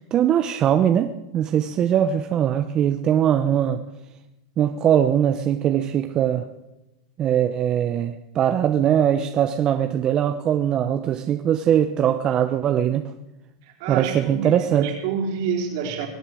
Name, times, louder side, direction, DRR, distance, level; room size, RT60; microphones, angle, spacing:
voice 1, 0.1-3.8 4.6-6.4 7.2-13.1 13.9-14.9, right 10 dB, 35° right, 8 dB, 0.9 m, -21 dB
voice 2, 13.6-16.1, right 6 dB, 65° right, 2 dB, 4.0 m, -28 dB
23.0 x 8.2 x 6.4 m, 0.96 s
hypercardioid pair, 115°, 2 cm